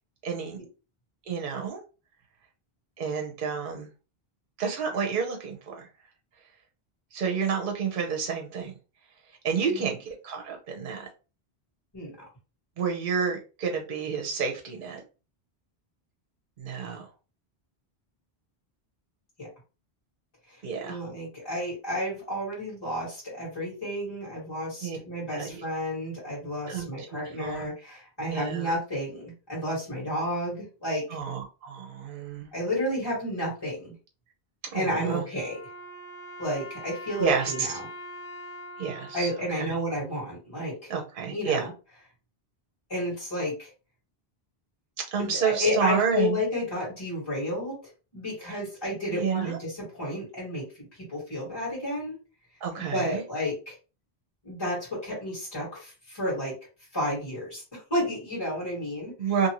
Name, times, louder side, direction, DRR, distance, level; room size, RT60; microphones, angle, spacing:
voice 1, 0.2-0.6 1.3-1.8 3.0-3.9 4.6-5.9 7.1-8.7 9.4-11.1 12.8-15.0 16.6-17.1 20.6-21.0 24.8-25.0 25.3-25.6 26.7-27.7 28.3-28.7 31.1-32.5 34.7-35.2 37.2-37.7 38.8-39.7 40.9-41.7 45.1-46.4 48.5-48.6 49.1-49.6 52.6-53.2 59.2-59.5, right 6 dB, 60° right, 2 dB, 0.8 m, -30 dB
voice 2, 20.8-31.0 32.5-33.9 34.7-35.6 36.4-37.8 39.1-40.9 41.3-41.7 42.9-43.7 45.2-47.7 48.1-50.6 51.1-52.2 52.8-53.7 54.4-56.5 56.9-59.1, left 1 dB, 25° left, -7 dB, 1.5 m, -31 dB
Wind instrument woodwind instrument, 35.3-40.5, equal, 80° left, 1.2 m, -43 dB
2.7 x 2.6 x 2.9 m, 0.32 s
omnidirectional pair, 1.0 m